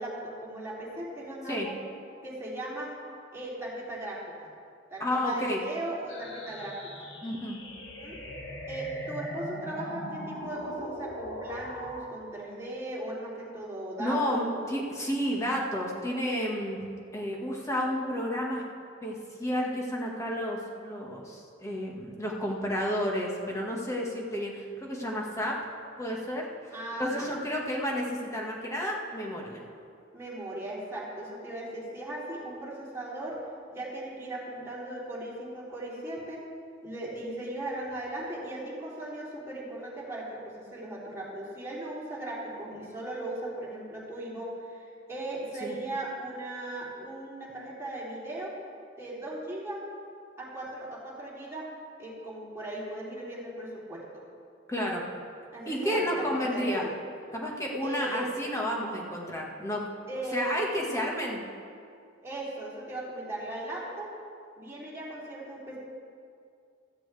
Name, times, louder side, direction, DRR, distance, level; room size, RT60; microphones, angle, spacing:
voice 1, 0.0-1.8 2.2-2.9 3.3-4.2 4.9-7.1 7.7-8.2 8.7-14.7 26.7-27.3 30.1-33.4 33.7-36.4 36.8-48.5 49.0-49.8 50.4-51.7 52.0-54.2 55.5-56.9 57.8-58.3 60.1-60.6 62.2-64.2 64.6-65.8, right 1 dB, 15° right, -7 dB, 3.3 m, -38 dB
voice 2, 5.0-5.6 7.2-7.6 14.0-16.8 17.1-18.6 19.0-25.6 26.0-26.5 27.0-29.6 45.6-45.7 54.7-55.0 55.6-56.9 57.3-59.9 60.3-61.4, equal, 15° left, -2 dB, 1.7 m, -31 dB
sound 1, 6.1-12.1, equal, 65° left, 1.9 m, -40 dB
15.0 x 14.0 x 3.4 m, 2.3 s
head